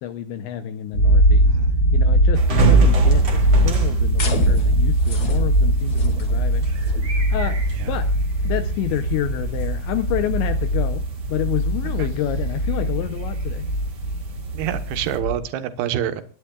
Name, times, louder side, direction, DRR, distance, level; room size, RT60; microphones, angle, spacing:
voice 1, 0.0-1.5 1.9-6.7 7.1-7.6 7.9-8.1 8.4-13.6, left 12 dB, 80° left, 8 dB, 2.7 m, -29 dB
sound 1, 0.9-15.4, right 1 dB, 30° left, 3.7 m, -20 dB
voice 2, 1.4-1.8 7.7-8.0 12.0-12.1 14.5-16.2, right 10 dB, 70° right, 9 dB, 2.5 m, -27 dB
sound 2, 2.3-15.2, right 1 dB, 50° right, 1.6 m, -29 dB
sound 3, 4.2-10.2, left 2 dB, 45° left, 1.5 m, -33 dB
29.5 x 11.5 x 2.3 m, 0.37 s
omnidirectional pair, 5.8 m